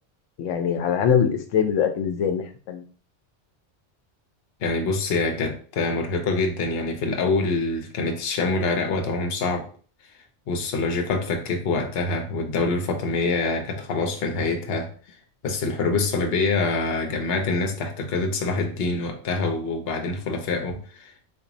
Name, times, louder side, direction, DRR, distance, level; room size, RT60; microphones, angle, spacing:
voice 1, 0.4-2.8, left 7 dB, 90° left, 6 dB, 0.9 m, -23 dB
voice 2, 4.6-9.7 10.5-15.2 15.4-21.1, left 3 dB, 60° left, 4 dB, 0.9 m, -25 dB
4.1 x 2.9 x 2.6 m, 0.42 s
omnidirectional pair, 1.2 m